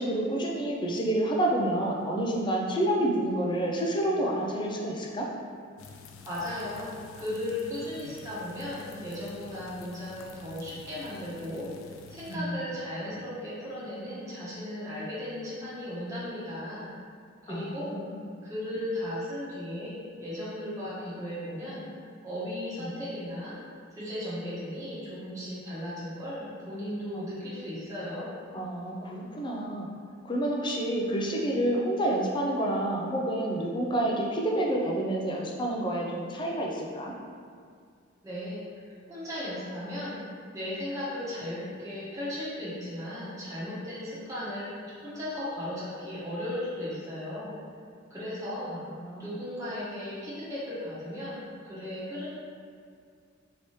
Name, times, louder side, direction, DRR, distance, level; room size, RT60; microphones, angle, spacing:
voice 1, 0.0-5.3 12.3-12.6 17.5-18.2 22.8-22.9 27.1-27.3 28.5-29.9 30.2-37.1 48.7-49.3, right 1 dB, 25° left, -2 dB, 0.4 m, -29 dB
sound 1, 5.8-12.4, left 4 dB, 90° left, 0.4 m, -49 dB
voice 2, 6.3-11.7 12.1-16.9 17.4-18.0 18.4-21.8 22.2-23.6 23.9-28.3 38.2-38.6 39.1-40.2 40.5-47.5 48.1-48.8 49.2-52.3, left 1 dB, 15° right, -11 dB, 1.1 m, -36 dB
4.5 x 2.9 x 3.1 m, 2.2 s
head